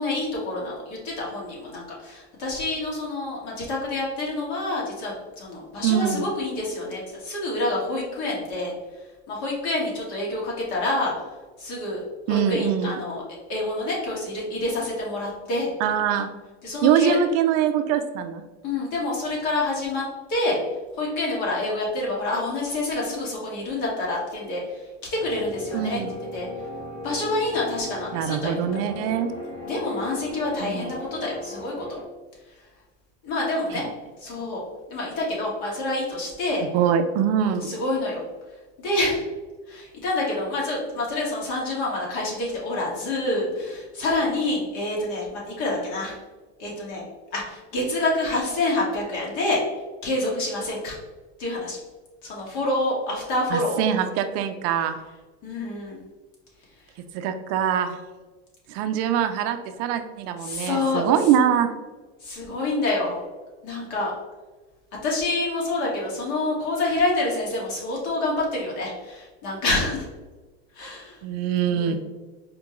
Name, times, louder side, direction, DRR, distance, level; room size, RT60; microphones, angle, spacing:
voice 1, 0.0-8.7 9.3-11.1 11.6-12.0 12.3-13.2 13.5-15.9 16.6-17.2 18.6-20.0 20.3-20.6 20.9-24.6 25.2-26.0 26.3-26.5 27.0-28.6 29.7-31.8 33.2-33.8 34.2-34.6 34.9-36.6 37.5-38.2 38.8-39.2 39.7-46.2 46.6-47.0 47.3-49.6 50.0-51.0 51.4-51.8 52.2-53.9 55.4-56.0 60.4-61.0 62.2-63.2 63.6-64.1 65.0-70.0 70.7-71.2 71.7-72.0, left 2 dB, 55° left, -3 dB, 1.5 m, -27 dB
voice 2, 5.8-6.2 12.3-13.0 15.8-16.3 16.8-18.4 25.7-26.2 28.1-29.3 30.6-30.9 33.7-33.9 36.7-37.7 53.5-55.0 57.1-58.0 58.7-61.7 71.2-71.9, right 8 dB, 50° right, 8 dB, 0.4 m, -23 dB
sound 1, 25.2-32.0, left 2 dB, 15° left, 1.1 m, -37 dB
4.3 x 2.2 x 3.0 m, 1.3 s
supercardioid pair, 125°, 32 cm